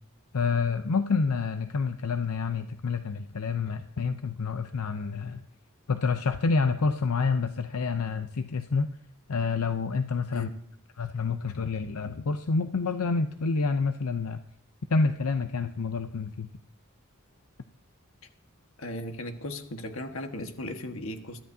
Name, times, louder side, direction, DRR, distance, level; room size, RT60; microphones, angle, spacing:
voice 1, 0.3-5.4 5.9-8.9 9.3-10.5 11.0-14.4 14.9-16.5, left 4 dB, 90° left, 8 dB, 0.6 m, -28 dB
voice 2, 18.8-21.4, left 1 dB, 65° left, 5 dB, 1.5 m, -36 dB
22.0 x 13.0 x 2.7 m, 0.68 s
head